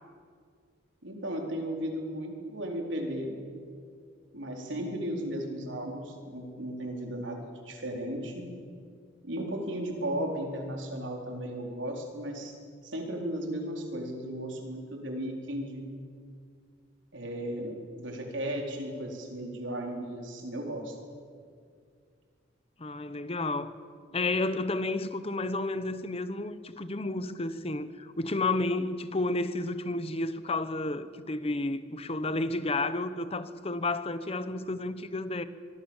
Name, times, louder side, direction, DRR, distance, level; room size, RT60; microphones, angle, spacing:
voice 1, 1.0-3.3 4.3-8.5 9.2-12.6 12.8-15.9 17.1-21.0, right 1 dB, 80° right, 4.4 m, -35 dB
voice 2, 22.8-23.7 24.1-35.4, left 2 dB, 30° left, 1.0 m, -31 dB
25.0 x 23.0 x 7.3 m
head